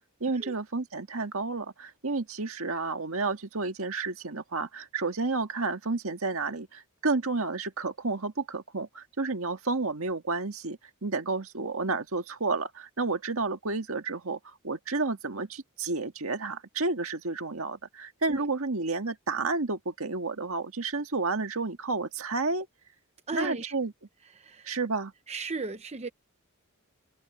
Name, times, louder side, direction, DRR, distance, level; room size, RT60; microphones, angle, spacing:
voice 1, 0.2-22.7 23.3-23.9 24.7-25.1, right 3 dB, 70° right, 1.9 m, -31 dB
voice 2, 23.3-23.7 24.2-24.8 25.3-26.1, right 3 dB, 30° right, 0.8 m, -36 dB
head